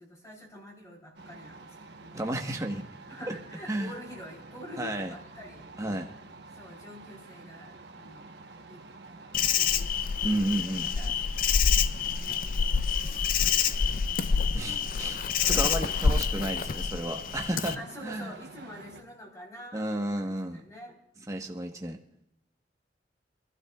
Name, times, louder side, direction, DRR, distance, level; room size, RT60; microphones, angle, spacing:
voice 1, 0.0-2.4 3.1-6.1 6.5-11.2 11.7-12.9 13.3-14.8 15.8-16.6 17.7-21.0, left 1 dB, 20° left, -1 dB, 3.4 m, -48 dB
sound 1, 1.1-19.0, right 3 dB, 70° right, 1.1 m, -49 dB
voice 2, 2.1-2.9 3.3-3.4 3.7-3.9 4.8-5.1 5.8-6.1 10.2-10.9 14.5-15.2 15.5-18.3 19.7-20.6 21.3-22.0, right 1 dB, 20° right, 2 dB, 1.1 m, -32 dB
Insect, 9.3-17.8, left 6 dB, 50° left, 0.5 m, -27 dB
27.0 x 12.5 x 2.4 m, 0.84 s
head